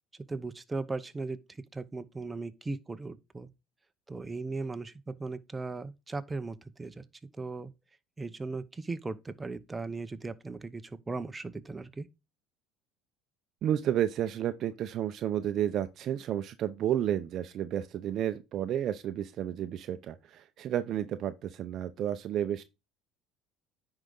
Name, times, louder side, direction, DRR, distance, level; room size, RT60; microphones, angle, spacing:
voice 1, 0.3-3.5 4.1-7.0 7.4-7.7 8.2-12.1, right 3 dB, 15° right, 0.8 m, -38 dB
voice 2, 13.6-22.6, right 10 dB, 50° right, 0.6 m, -31 dB
9.9 x 4.9 x 3.9 m
supercardioid pair, 105°, 0 cm